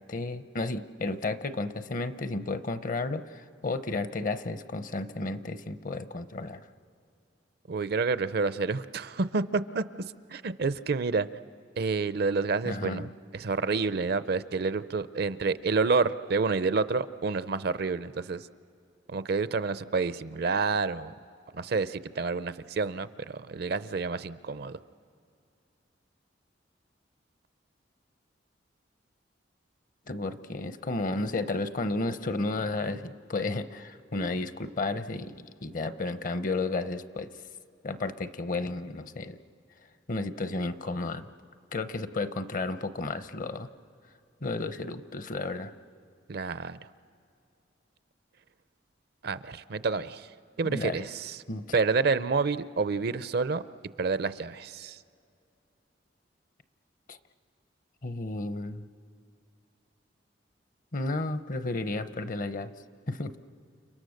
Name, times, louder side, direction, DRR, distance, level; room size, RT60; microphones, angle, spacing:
voice 1, 0.1-6.7 12.6-13.1 30.1-37.3 37.8-39.4 40.1-41.3 41.7-43.7 44.4-45.7 50.6-51.0 51.5-51.8 57.1-57.2 58.0-58.9 60.9-62.7 63.1-63.3, left 2 dB, 45° left, 11 dB, 0.8 m, -32 dB
voice 2, 7.7-9.8 10.3-11.3 11.8-18.5 19.1-21.1 21.5-24.8 46.3-46.8 49.2-51.4 51.7-53.6 54.0-55.0, right 4 dB, 55° right, 14 dB, 0.6 m, -29 dB
30.0 x 29.0 x 6.5 m, 2.4 s
head